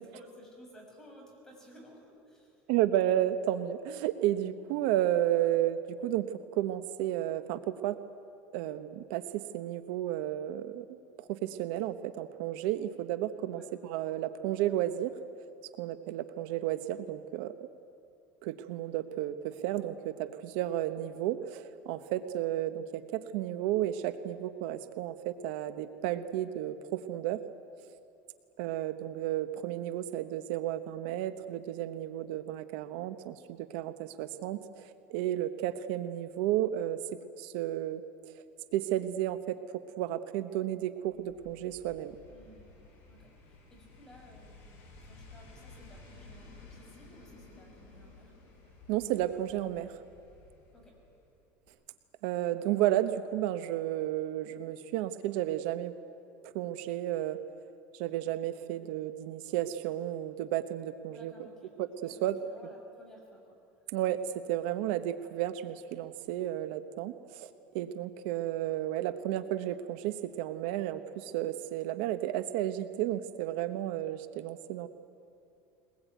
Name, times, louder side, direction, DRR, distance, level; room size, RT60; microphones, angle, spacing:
voice 1, 0.1-2.6 13.5-13.7 42.3-42.7 43.1-44.7 45.0-48.3 50.7-51.0 61.1-61.7 62.0-63.6, equal, 10° left, -1 dB, 6.3 m, -55 dB
voice 2, 2.7-8.0 8.5-15.1 15.8-17.5 18.4-27.4 28.6-37.0 37.4-38.0 38.3-38.4 38.7-42.1 48.9-50.0 52.2-55.9 56.4-57.4 57.9-61.3 61.8-62.4 63.9-74.9, right 12 dB, 70° right, 11 dB, 1.0 m, -32 dB
sound 1, 41.0-51.4 51.7-51.8, left 3 dB, 45° left, 7.9 m, -54 dB
22.5 x 20.5 x 9.3 m, 2.7 s
cardioid pair, 150°, 6 cm